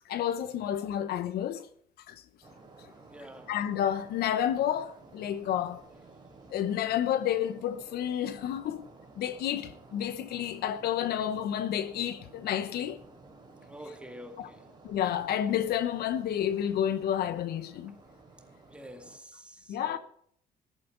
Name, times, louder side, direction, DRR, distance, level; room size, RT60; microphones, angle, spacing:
voice 1, 0.1-1.7 2.1-2.2 3.5-5.8 6.5-8.9 9.2-13.0 14.4-14.5 14.8-17.9 19.7-20.0, left 10 dB, 70° left, 0.9 m, -30 dB
sound 1, 2.4-19.2, right 3 dB, 25° right, 4.1 m, -54 dB
voice 2, 3.1-3.5 13.6-14.6 18.7-20.0, equal, 5° right, 2.0 m, -47 dB
14.0 x 12.0 x 3.8 m
cardioid pair, 110°, 17 cm